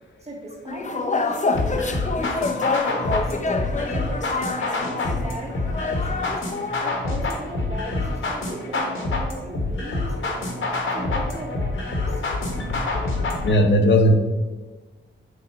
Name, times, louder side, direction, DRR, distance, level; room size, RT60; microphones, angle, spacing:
voice 1, 0.2-10.6 10.9-12.2, right 1 dB, 30° right, -3 dB, 2.5 m, -37 dB
sound 1, 0.7-6.9, left 3 dB, 35° left, 0.7 m, -27 dB
sound 2, 1.5-13.5, left 2 dB, 75° left, 1.6 m, -27 dB
voice 2, 13.4-14.2, equal, 60° left, 4 dB, 1.1 m, -16 dB
7.9 x 4.0 x 5.5 m, 1.3 s
cardioid pair, 75°, 21 cm